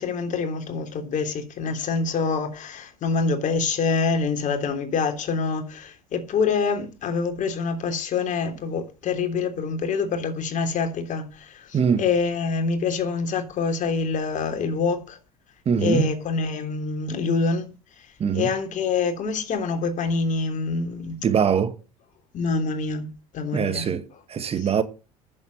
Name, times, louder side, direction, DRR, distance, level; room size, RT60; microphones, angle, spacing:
voice 1, 0.0-15.2 15.8-17.7 18.3-21.2 22.3-23.9 24.6-24.7, left 4 dB, 40° left, 3.2 m, -26 dB
voice 2, 15.6-16.0 18.2-18.5 21.2-21.8 23.5-24.8, right 7 dB, 35° right, 1.3 m, -22 dB
10.5 x 7.5 x 7.8 m
figure-of-eight pair, 65°, 19 cm